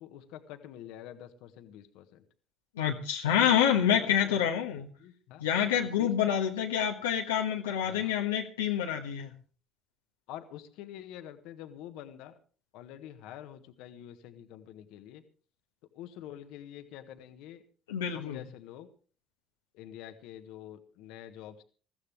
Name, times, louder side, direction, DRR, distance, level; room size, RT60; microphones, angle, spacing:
voice 1, 0.0-2.2 3.3-3.6 3.9-4.6 5.0-5.4 5.7-6.3 7.8-8.1 10.3-12.3 12.7-15.2 15.9-17.6 18.1-18.9 19.7-21.6, left 11 dB, 75° left, 8 dB, 1.4 m, -46 dB
voice 2, 2.8-4.9 5.4-9.3 17.9-18.4, left 9 dB, 90° left, 1 dB, 1.4 m, -27 dB
21.5 x 14.5 x 3.4 m, 0.38 s
hypercardioid pair, 60°, 0 cm